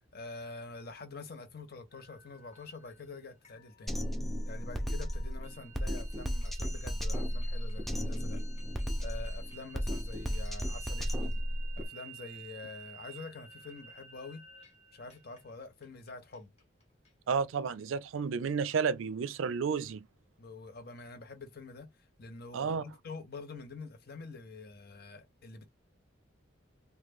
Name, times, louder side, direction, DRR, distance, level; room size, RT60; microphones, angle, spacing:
voice 1, 0.1-4.0 4.5-8.4 9.0-11.4 11.8-14.4 14.9-16.5 20.4-21.9 22.2-25.7, left 3 dB, 50° left, 0.7 m, -46 dB
sound 1, 1.9-17.8, right 5 dB, 35° left, 1.0 m, -54 dB
Drum kit, 3.9-11.9, equal, ahead, 0.5 m, -34 dB
voice 2, 17.3-20.0 22.5-22.8, right 6 dB, 85° right, 0.4 m, -31 dB
3.1 x 2.2 x 3.4 m
head